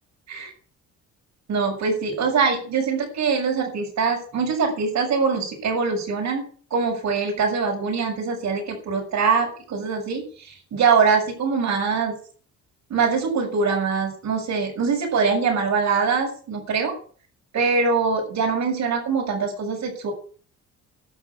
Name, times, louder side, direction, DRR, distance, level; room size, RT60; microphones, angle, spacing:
voice 1, 1.5-6.4 6.7-12.2 12.9-16.9 17.5-20.1, right 5 dB, 65° right, -1 dB, 7.1 m, -23 dB
12.0 x 7.6 x 9.9 m, 0.43 s
cardioid pair, 90°, 30 cm